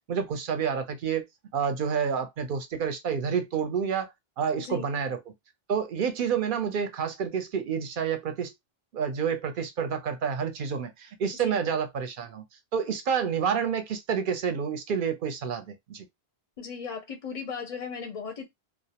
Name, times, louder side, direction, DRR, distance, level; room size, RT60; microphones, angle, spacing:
voice 1, 0.1-1.3 1.5-5.2 5.7-8.5 8.9-12.4 12.7-16.1, right 7 dB, 60° right, 0.6 m, -29 dB
voice 2, 16.6-18.5, left 6 dB, 50° left, 0.5 m, -36 dB
2.3 x 2.0 x 2.8 m
omnidirectional pair, 1.1 m